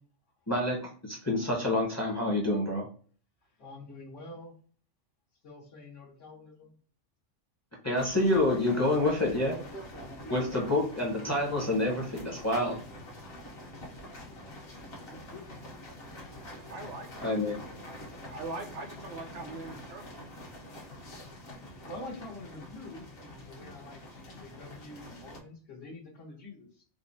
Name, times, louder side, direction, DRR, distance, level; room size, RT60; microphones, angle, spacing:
voice 1, 0.5-2.8 7.8-9.6 10.3-12.8 17.2-17.6, left 1 dB, 20° left, -2 dB, 0.6 m, -28 dB
voice 2, 3.6-4.5 5.4-6.7 13.5-14.0 15.0-15.4 21.9-26.8, left 2 dB, 75° left, -8 dB, 1.3 m, -46 dB
sound 1, 7.9-25.4, left 1 dB, 55° left, 1.0 m, -45 dB
voice 3, 16.7-20.3, right 3 dB, 65° right, 5 dB, 0.8 m, -43 dB
3.5 x 2.1 x 2.5 m, 0.43 s
omnidirectional pair, 1.2 m